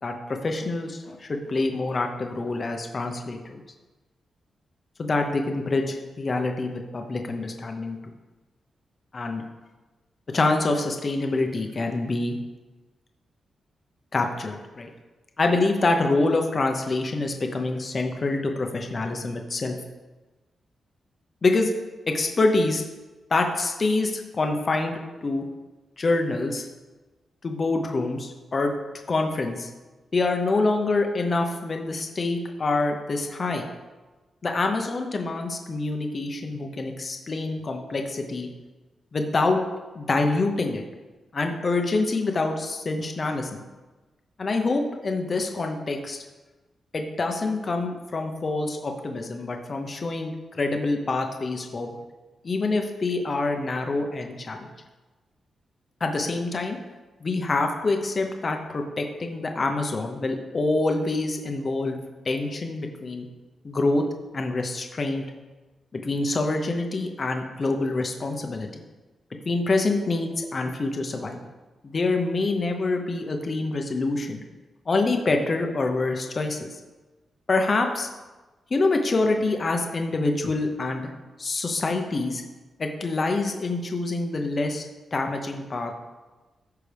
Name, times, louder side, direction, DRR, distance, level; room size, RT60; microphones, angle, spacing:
voice 1, 0.0-3.6 5.0-8.0 9.1-9.4 10.3-12.4 14.1-14.9 15.4-19.8 21.4-21.7 22.1-22.8 23.3-25.5 26.0-26.6 27.4-28.7 29.1-29.7 30.1-33.7 34.4-38.5 39.1-39.6 39.9-40.8 41.3-43.6 44.4-46.2 46.9-51.9 52.4-54.7 56.0-56.8 57.2-62.0 62.2-63.3 63.6-64.0 64.3-65.2 65.9-68.8 69.5-71.4 71.8-74.4 74.9-76.8 77.5-78.1 78.7-81.1 81.4-82.4 82.8-84.8 85.1-86.0, left 3 dB, 30° left, 3 dB, 0.8 m, -26 dB
14.0 x 5.9 x 3.4 m, 1.2 s
wide cardioid pair, 170°, 0 cm